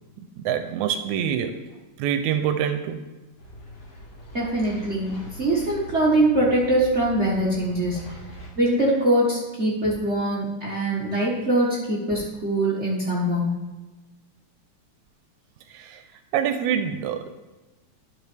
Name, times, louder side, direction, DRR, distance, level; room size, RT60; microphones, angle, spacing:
voice 1, 0.4-1.6 2.0-3.0 15.7-16.0 16.3-17.3, right 8 dB, 80° right, 8 dB, 1.9 m, -25 dB
sound 1, 3.4-8.5, right 1 dB, 90° left, 3.5 m, -41 dB
voice 2, 4.3-8.0 8.6-13.5, right 1 dB, 45° right, -5 dB, 0.8 m, -23 dB
11.0 x 6.4 x 3.4 m, 1.1 s
omnidirectional pair, 3.4 m